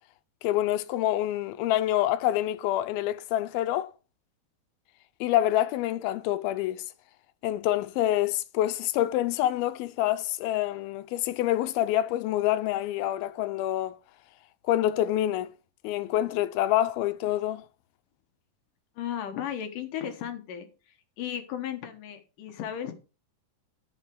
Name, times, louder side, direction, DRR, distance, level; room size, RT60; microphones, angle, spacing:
voice 1, 0.4-3.9 5.2-6.9 7.4-14.0 14.7-15.5 15.8-17.7, left 13 dB, 90° left, 2.6 m, -27 dB
voice 2, 19.0-20.7 21.2-22.9, left 10 dB, 70° left, 2.6 m, -35 dB
11.5 x 6.8 x 4.7 m
omnidirectional pair, 4.2 m